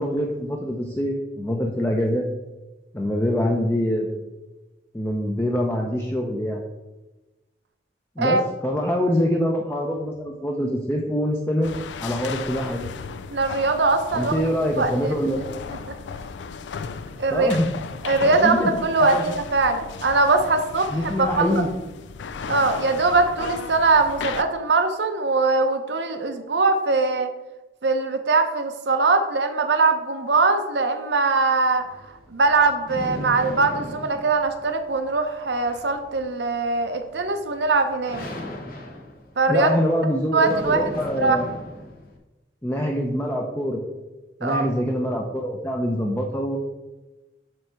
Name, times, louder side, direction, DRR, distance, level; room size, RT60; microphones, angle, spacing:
voice 1, 0.0-2.3 2.9-4.2 4.9-6.6 8.2-11.7 12.0-12.9 14.1-15.5 17.3-17.7 18.3-18.7 19.0-19.2 20.9-21.7 39.5-41.5 42.6-43.8 44.4-46.6, equal, 10° left, 0 dB, 0.5 m, -24 dB
sound 1, 11.6-24.4, left 5 dB, 90° left, 0.4 m, -35 dB
voice 2, 13.3-14.3 14.8-14.9 17.2-17.6 18.0-21.7 22.5-27.3 27.8-31.8 32.3-38.2 39.4-39.7 40.3-41.4 44.4-44.7, right 3 dB, 75° right, 6 dB, 0.7 m, -21 dB
sound 2, 31.7-42.2, left 1 dB, 55° left, 0.9 m, -38 dB
7.5 x 3.3 x 4.5 m, 1.1 s
head